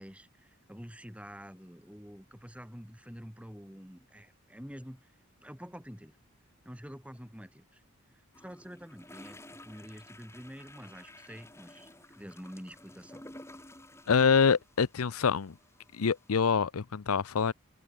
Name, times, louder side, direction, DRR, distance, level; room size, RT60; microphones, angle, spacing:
voice 1, 0.0-5.1 5.4-6.2 6.6-7.8 8.4-13.2, equal, 5° right, 7.4 m, -47 dB
sound 1, 8.3-16.4, left 1 dB, 10° left, 7.3 m, -53 dB
voice 2, 14.1-15.5 15.9-17.5, left 6 dB, 80° left, 0.6 m, -25 dB
head